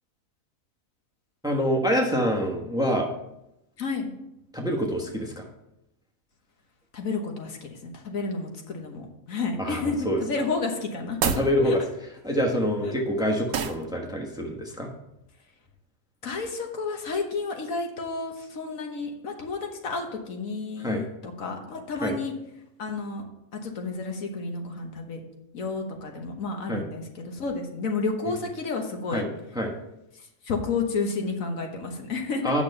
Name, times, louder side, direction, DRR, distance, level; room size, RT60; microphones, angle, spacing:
voice 1, 1.4-3.1 4.5-5.4 9.6-10.2 11.2-11.8 12.2-14.9 20.8-21.0 22.0-22.1 26.7-26.8 29.1-29.3 29.5-29.7 32.4-32.6, equal, 5° right, 1 dB, 1.1 m, -26 dB
voice 2, 6.9-11.7 12.8-12.9 16.2-22.3 22.8-23.2 23.6-25.2 25.5-29.2 30.4-32.4, left 4 dB, 75° left, 3 dB, 1.6 m, -31 dB
sound 1, 11.1-11.5 13.5-13.9, right 7 dB, 60° right, 0.8 m, -27 dB
8.7 x 6.0 x 5.5 m, 0.85 s
omnidirectional pair, 1.4 m